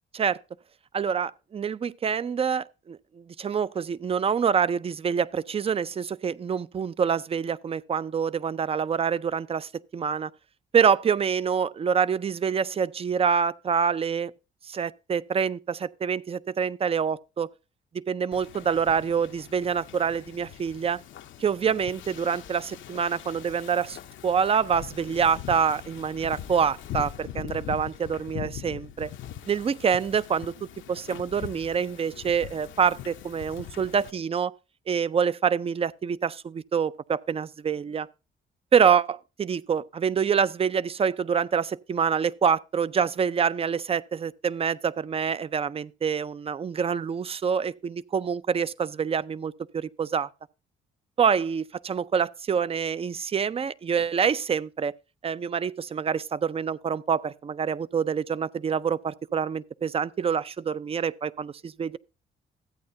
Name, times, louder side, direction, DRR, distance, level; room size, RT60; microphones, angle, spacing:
voice 1, 0.9-10.3 10.7-14.3 14.7-17.5 17.9-21.0 21.4-24.0 24.2-29.1 29.5-34.5 34.9-38.1 38.7-50.3 51.2-54.9 55.2-62.0, right 7 dB, 30° right, 0.4 m, -26 dB
Wind / Ocean, 18.3-34.1, left 11 dB, 75° left, 0.7 m, -42 dB
13.5 x 8.6 x 2.6 m
cardioid pair, 90°, 20 cm